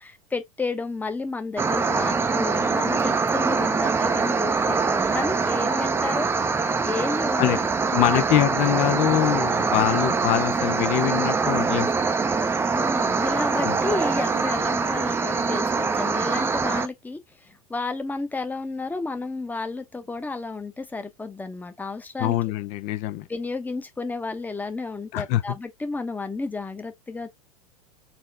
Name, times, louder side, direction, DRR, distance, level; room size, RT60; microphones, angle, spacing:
voice 1, 0.0-6.3 6.8-7.7 8.0-8.2 12.7-22.4 23.3-27.3, left 3 dB, 10° left, 0.9 m, -31 dB
sound 1, 1.6-16.9, right 4 dB, 15° right, 0.6 m, -24 dB
voice 2, 7.9-12.1 13.6-13.8 22.2-23.3 25.1-25.6, left 14 dB, 45° left, 0.6 m, -24 dB
Wind instrument woodwind instrument, 12.5-16.4, right 5 dB, 90° right, 0.7 m, -38 dB
4.4 x 3.0 x 3.3 m
figure-of-eight pair, 85°, 19 cm